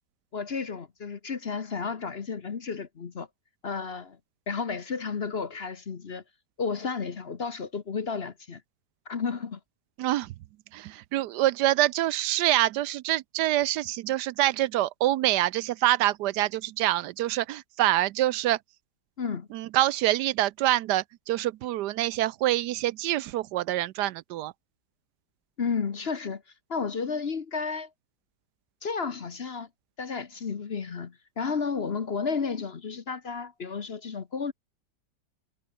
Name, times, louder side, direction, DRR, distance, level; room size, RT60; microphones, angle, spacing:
voice 1, 0.3-3.3 3.6-4.2 4.5-6.2 6.6-8.6 9.1-9.6 19.2-19.5 25.6-26.4 26.7-27.9 28.8-29.7 30.0-34.5, left 5 dB, 40° left, 1.2 m, -32 dB
voice 2, 10.0-10.3 10.7-18.6 19.5-24.5, right 14 dB, 80° right, 1.2 m, -26 dB
omnidirectional pair, 1.8 m